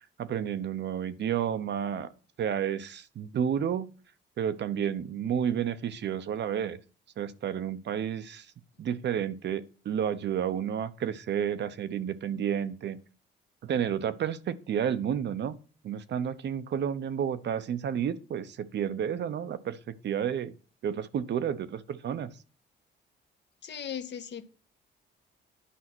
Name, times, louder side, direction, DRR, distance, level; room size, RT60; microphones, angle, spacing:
voice 1, 0.2-2.1 2.4-3.9 4.4-6.8 7.2-8.5 8.8-13.0 13.6-15.6 15.8-19.8 20.0-20.5 20.8-22.3, right 8 dB, 60° right, 0.9 m, -31 dB
voice 2, 23.6-24.4, left 8 dB, 60° left, 1.5 m, -37 dB
10.0 x 5.6 x 6.1 m
cardioid pair, 90°, 20 cm